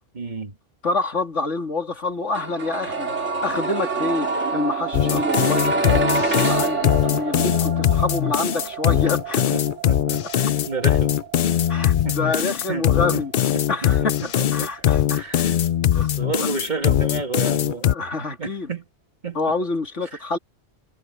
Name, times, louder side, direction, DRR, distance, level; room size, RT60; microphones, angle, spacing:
voice 1, 0.1-0.6 9.5-11.2 11.6-13.2 13.5-13.9 14.4-15.6 15.9-18.0 18.4-18.9 19.2-19.4 20.1-20.2, right 4 dB, 40° right, 1.8 m, -32 dB
voice 2, 0.8-3.1 3.4-9.6 11.7-13.3 13.7-15.2 15.9-16.1 16.4-16.5 17.8-18.7 19.3-20.4, left 3 dB, 80° left, 2.8 m, -27 dB
sound 1, 2.3-14.2 14.4-14.5, right 4 dB, 75° right, 3.2 m, -27 dB
sound 2, 4.9-17.9, left 11 dB, 60° left, 0.6 m, -21 dB
omnidirectional pair, 1.2 m